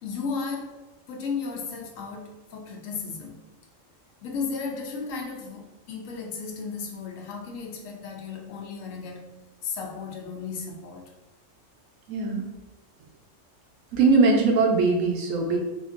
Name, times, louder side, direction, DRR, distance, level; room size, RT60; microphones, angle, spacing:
voice 1, 0.0-0.8 1.1-3.4 4.2-9.3 9.6-11.1, left 5 dB, 80° left, 2 dB, 1.0 m, -34 dB
voice 2, 12.1-12.4 13.9-15.6, right 3 dB, 85° right, 1 dB, 1.0 m, -21 dB
2.8 x 2.6 x 2.4 m, 1.1 s
omnidirectional pair, 1.3 m